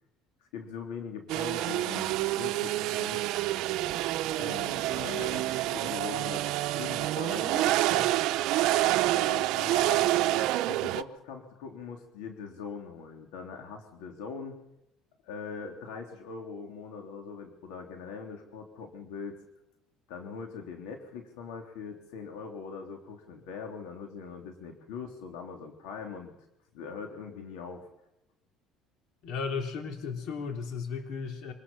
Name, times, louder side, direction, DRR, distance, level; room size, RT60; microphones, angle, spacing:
voice 1, 0.5-3.2 4.4-8.1 9.1-14.6 15.2-19.4 20.1-26.3 26.7-27.9, left 5 dB, 90° left, 3 dB, 3.5 m, -41 dB
sound 1, 1.3-11.0, right 16 dB, 70° right, 0.8 m, -28 dB
voice 2, 29.2-31.5, left 5 dB, 65° left, 4 dB, 3.5 m, -35 dB
25.0 x 19.5 x 5.7 m, 0.84 s
cardioid pair, 120°, 0 cm